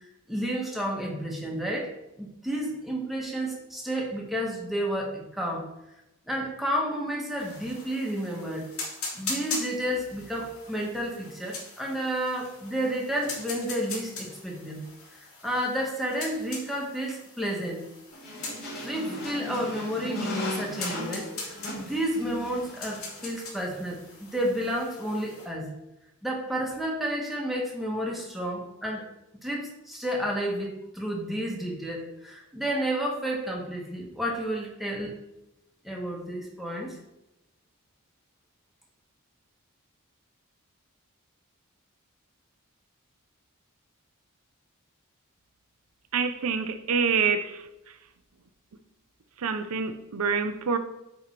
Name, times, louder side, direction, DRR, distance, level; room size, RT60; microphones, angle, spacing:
voice 1, 0.3-1.9 2.2-5.7 6.3-8.7 9.1-14.8 15.1-17.8 18.8-25.7 26.2-29.1 29.4-35.2 35.8-37.0, equal, ahead, 1.2 m, -31 dB
sound 1, 7.4-25.5, left 3 dB, 70° left, 2.6 m, -41 dB
sound 2, 18.1-23.3, left 1 dB, 45° left, 2.4 m, -36 dB
voice 2, 46.1-47.7 49.4-50.8, right 5 dB, 80° right, 0.5 m, -26 dB
8.7 x 3.5 x 4.3 m
head